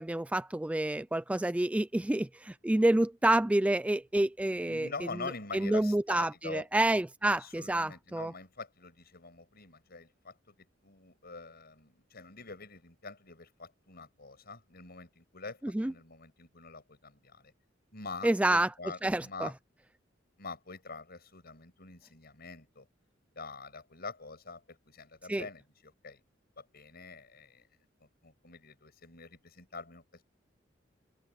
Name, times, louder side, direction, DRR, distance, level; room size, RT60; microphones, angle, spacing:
voice 1, 0.0-4.9 5.5-8.3 15.7-15.9 18.2-18.7 19.0-19.5 25.3-25.4, right 1 dB, 5° right, 0.3 m, -28 dB
voice 2, 4.7-6.6 7.4-10.5 10.8-17.5 17.9-19.5 20.4-22.9 23.3-26.2 26.6-27.7 28.2-30.2, left 4 dB, 55° left, 6.1 m, -45 dB
open air
head